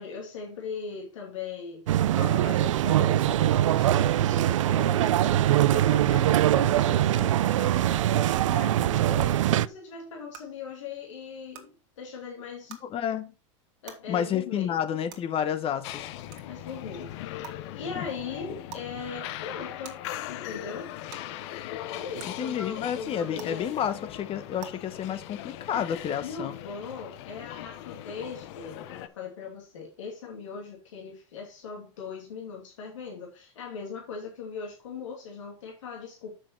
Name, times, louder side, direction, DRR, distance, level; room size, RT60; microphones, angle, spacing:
voice 1, 0.0-12.8 13.8-14.8 16.4-17.1 17.7-20.9 21.9-23.7 26.2-36.4, left 5 dB, 80° left, 2.6 m, -39 dB
sound 1, 1.9-9.7, right 13 dB, 85° right, 0.4 m, -22 dB
sound 2, 9.2-9.3 10.3-10.4 11.5-11.6 12.7-12.8 13.9-14.0 15.1-15.2 16.3-16.4 17.4-17.5 18.7-18.8 19.8-19.9 21.1-21.2 22.2-22.3 23.4-23.5 24.6-24.7, right 9 dB, 60° right, 1.9 m, -42 dB
voice 2, 12.8-13.3 14.1-16.1 17.9-18.0 22.4-26.5, left 9 dB, 35° left, 1.2 m, -30 dB
sound 3, 15.8-29.1, left 13 dB, 65° left, 0.9 m, -40 dB
7.2 x 6.0 x 4.6 m
hypercardioid pair, 100°, 16 cm